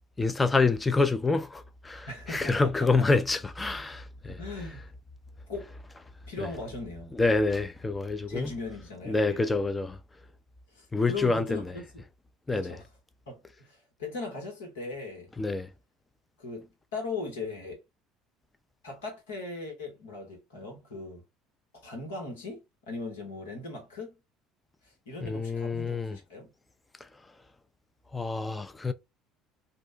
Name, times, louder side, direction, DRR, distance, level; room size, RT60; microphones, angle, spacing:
voice 1, 0.2-4.4 6.4-6.5 7.1-8.5 9.1-10.0 10.9-11.7 12.5-12.8 15.4-15.7 25.2-26.2 28.1-28.9, left 3 dB, 20° left, 0.5 m, -27 dB
voice 2, 2.1-3.1 4.3-4.9 5.5-5.7 6.3-7.1 8.3-9.4 10.7-12.0 12.5-12.9 13.3-15.3 16.4-17.8 18.8-21.2 21.7-24.1 25.0-26.5, left 3 dB, 90° left, 1.3 m, -39 dB
2.5 x 2.2 x 3.8 m
hypercardioid pair, 70°, 0 cm